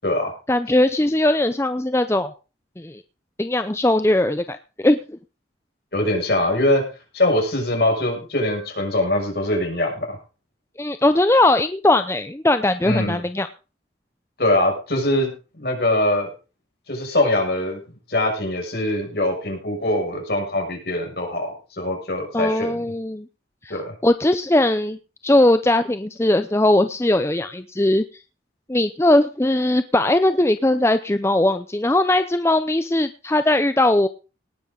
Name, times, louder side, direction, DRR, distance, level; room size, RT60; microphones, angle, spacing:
voice 1, 0.5-2.3 2.8-3.0 3.4-5.0 10.8-13.5 22.3-23.3 23.6-25.0 25.2-28.0 28.7-34.1, left 1 dB, 15° left, 10 dB, 0.6 m, -19 dB
voice 2, 5.9-6.8 7.1-10.2 12.8-13.2 14.4-15.3 15.6-16.3 16.9-17.8 18.1-22.8 23.7-23.9, left 1 dB, 55° left, 2 dB, 6.4 m, -22 dB
18.5 x 10.5 x 3.9 m, 0.33 s
head